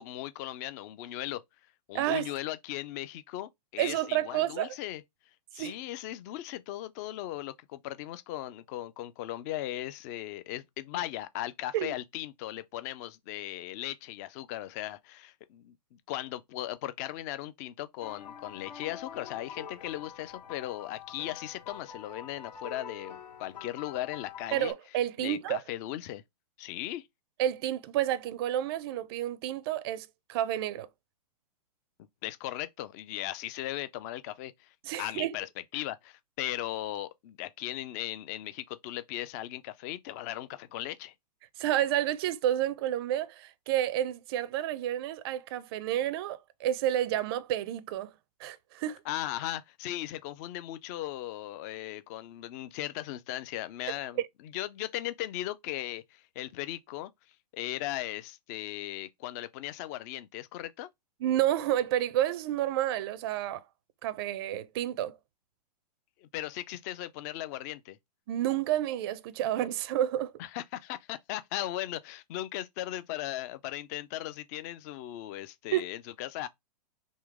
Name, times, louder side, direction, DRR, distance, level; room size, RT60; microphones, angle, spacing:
voice 1, 0.0-1.4 1.9-5.0 5.5-24.7 25.2-26.2 26.6-27.1 32.2-34.7 35.0-35.5 35.7-41.1 49.0-54.2 54.5-57.1 57.5-60.9 66.2-68.0 70.4-76.5, left 14 dB, 25° left, 0.3 m, -37 dB
voice 2, 1.9-2.3 3.8-4.7 5.6-5.8 11.7-12.0 24.5-25.6 27.4-30.9 34.8-35.3 41.6-48.1 48.4-49.0 54.2-54.3 61.2-63.6 64.0-65.2 68.3-70.3 75.7-75.9, right 12 dB, 35° right, 0.4 m, -30 dB
sound 1, 18.0-24.7, left 7 dB, 85° left, 2.0 m, -46 dB
3.7 x 3.0 x 4.7 m
hypercardioid pair, 155°, 21 cm